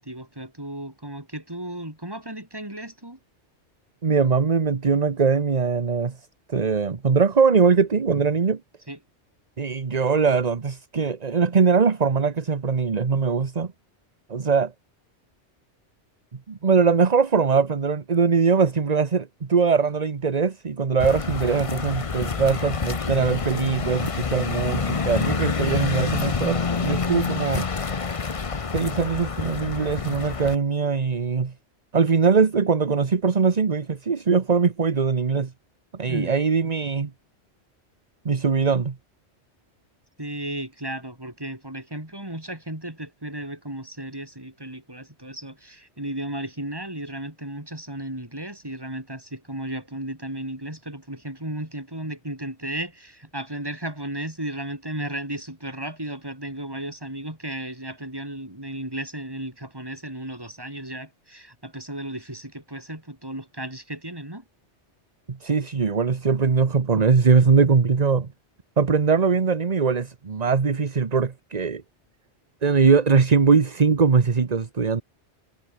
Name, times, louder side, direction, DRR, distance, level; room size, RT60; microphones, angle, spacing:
voice 1, 0.0-3.2 8.9-9.0 36.1-36.3 40.2-64.4, right 1 dB, 20° right, 3.9 m, -34 dB
voice 2, 4.0-6.2 6.5-8.6 9.6-13.7 14.3-14.7 16.5-27.7 28.7-31.5 31.9-35.5 35.9-37.1 38.2-39.0 65.3-68.3 68.8-71.8 72.6-75.0, right 5 dB, 35° right, 1.1 m, -21 dB
sound 1, 21.0-30.6, left 5 dB, 30° left, 0.9 m, -27 dB
omnidirectional pair, 1.2 m